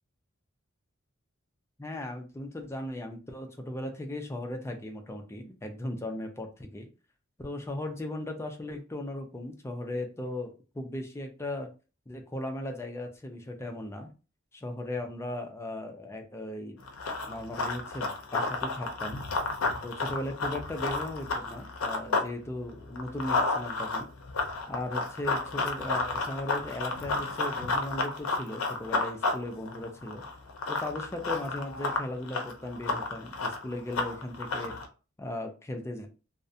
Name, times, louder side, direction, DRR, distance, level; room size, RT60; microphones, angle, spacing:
voice 1, 1.8-6.9 7.4-11.7 12.1-14.1 14.5-16.8 17.3-19.2 19.7-24.1 24.7-30.2 30.7-34.8 35.2-36.1, left 1 dB, 15° left, 4 dB, 0.4 m, -37 dB
Run, 16.8-22.3 22.6-34.9, left 3 dB, 80° left, 0.5 m, -32 dB
2.4 x 2.0 x 2.6 m, 0.34 s
head